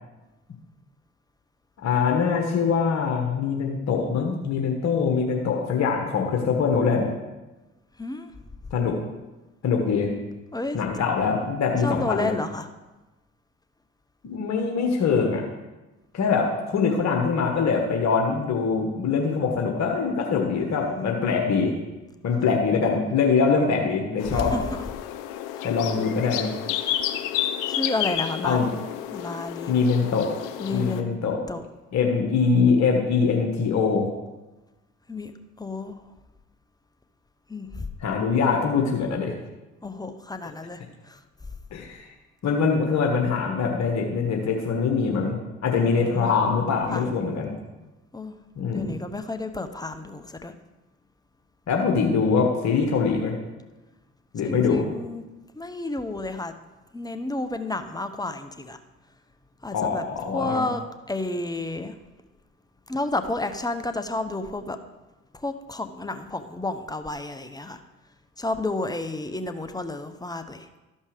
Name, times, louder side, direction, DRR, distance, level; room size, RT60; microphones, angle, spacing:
voice 1, 1.8-7.1 8.7-9.0 9.6-10.1 10.7-12.4 14.2-15.4 16.1-21.7 22.2-24.5 25.6-26.5 28.4-28.7 29.7-30.3 30.7-31.4 31.9-34.1 38.0-39.3 41.7-42.1 42.4-47.5 48.6-49.0 51.7-53.4 54.3-54.8 59.7-60.6, left 5 dB, 55° left, 1 dB, 1.4 m, -23 dB
voice 2, 8.0-8.3 10.5-10.8 11.8-12.7 20.5-21.1 24.3-24.6 25.5-25.7 27.7-28.6 29.1-29.7 30.6-31.1 31.5-31.6 35.1-35.3 35.6-36.0 37.5-37.9 39.8-40.8 41.1-41.2 45.8-46.3 46.9-47.0 48.1-48.4 48.7-50.5 54.4-55.2 55.5-56.5 56.9-58.8 59.6-60.0 60.3-60.8 61.1-61.9 62.9-64.8 65.3-67.8 68.4-70.7, left 2 dB, 10° left, 8 dB, 0.9 m, -31 dB
sound 1, 24.2-31.0, left 11 dB, 70° left, 0.7 m, -31 dB
13.0 x 5.4 x 5.0 m, 1.1 s
hypercardioid pair, 50°, 33 cm